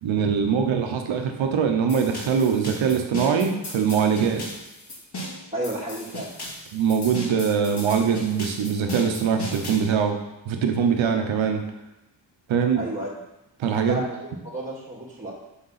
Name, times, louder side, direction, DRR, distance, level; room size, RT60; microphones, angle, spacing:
voice 1, 0.0-4.5 6.7-10.2 10.5-11.6 12.5-12.8 13.6-14.0, right 6 dB, 85° right, 5 dB, 0.9 m, -22 dB
sound 1, 1.9-9.9, left 1 dB, 60° left, 2.5 m, -37 dB
voice 2, 5.5-6.3 12.7-13.1 13.8-15.3, right 1 dB, 15° right, -4 dB, 1.9 m, -32 dB
6.2 x 3.9 x 5.6 m, 0.94 s
cardioid pair, 50°, 45 cm